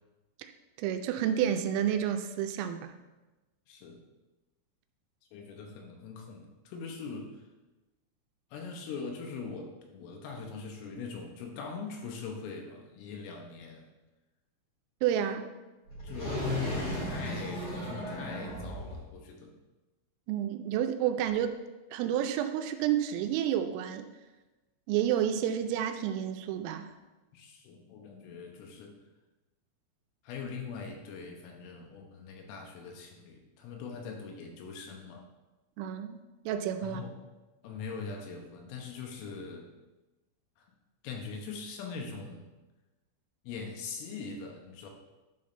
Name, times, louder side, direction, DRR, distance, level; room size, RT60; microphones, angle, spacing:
voice 1, 0.8-2.9 15.0-15.5 20.3-21.6 21.9-24.1 24.9-26.9 35.8-37.0, right 10 dB, 85° right, 7 dB, 3.1 m, -30 dB
voice 2, 3.7-4.0 5.3-7.4 8.5-13.9 16.0-16.5 16.9-19.5 27.3-28.9 30.2-35.2 36.8-37.1 37.6-39.7 40.6-40.7 41.0-42.4 43.4-44.9, left 5 dB, 80° left, 1 dB, 3.5 m, -42 dB
sound 1, 15.9-19.0 21.3-21.4, left 1 dB, 35° left, 3.1 m, -34 dB
11.0 x 5.6 x 3.2 m, 1.1 s
omnidirectional pair, 5.9 m